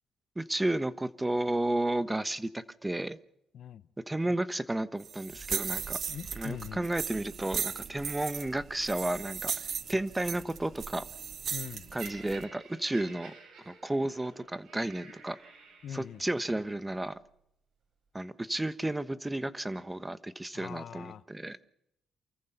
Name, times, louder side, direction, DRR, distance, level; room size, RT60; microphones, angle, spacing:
voice 1, 0.4-3.2 4.1-6.0 6.3-9.5 9.9-11.0 11.9-13.3 13.7-15.4 15.9-17.2 18.1-21.6, right 1 dB, 10° right, 1.2 m, -32 dB
sound 1, 5.0-12.4, right 7 dB, 50° right, 0.7 m, -37 dB
voice 2, 6.1-6.8 11.5-11.9 15.8-16.2 20.5-21.2, left 9 dB, 65° left, 0.9 m, -42 dB
Laughter, 12.0-16.2 17.0-17.2, right 4 dB, 75° right, 7.8 m, -51 dB
28.5 x 14.5 x 6.8 m
cardioid pair, 90°, 0 cm